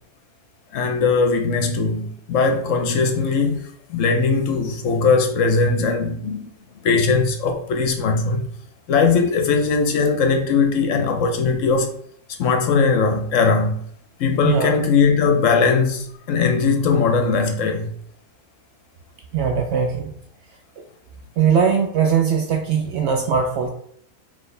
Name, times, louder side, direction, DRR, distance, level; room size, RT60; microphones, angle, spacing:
voice 1, 0.7-6.5 6.8-8.5 8.9-11.9 12.4-13.8 14.2-17.9, left 4 dB, 65° left, 0.9 m, -19 dB
voice 2, 14.4-14.8 19.3-20.1 20.8-20.9 21.4-23.7, right 6 dB, 65° right, 0.7 m, -20 dB
4.3 x 3.0 x 3.2 m
omnidirectional pair, 1.5 m